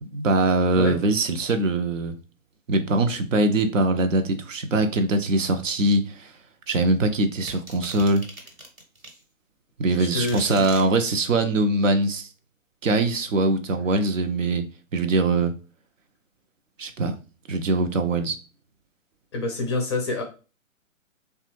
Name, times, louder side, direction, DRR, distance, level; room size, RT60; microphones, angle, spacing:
voice 1, 0.0-2.1 2.7-6.3 6.7-8.3 9.8-12.3 12.8-14.6 14.9-15.5 16.8-17.2 17.5-18.4, right 2 dB, 65° right, 0.7 m, -22 dB
sound 1, 7.5-9.2 9.9-10.9, right 1 dB, 85° right, 1.4 m, -41 dB
voice 2, 10.0-10.6 19.3-20.2, left 3 dB, 20° left, 0.5 m, -27 dB
3.3 x 2.3 x 3.1 m
figure-of-eight pair, 125°, 41 cm